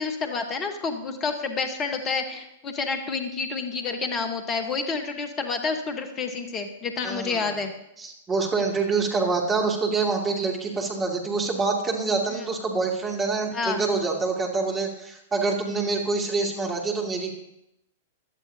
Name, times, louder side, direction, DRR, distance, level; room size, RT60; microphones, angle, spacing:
voice 1, 0.0-7.7 12.3-12.5 13.5-13.8, left 4 dB, 25° left, 6 dB, 1.3 m, -29 dB
voice 2, 7.0-7.6 8.0-17.3, right 4 dB, 20° right, 0 dB, 2.6 m, -26 dB
16.5 x 11.5 x 2.8 m, 0.85 s
figure-of-eight pair, 100°, 0 cm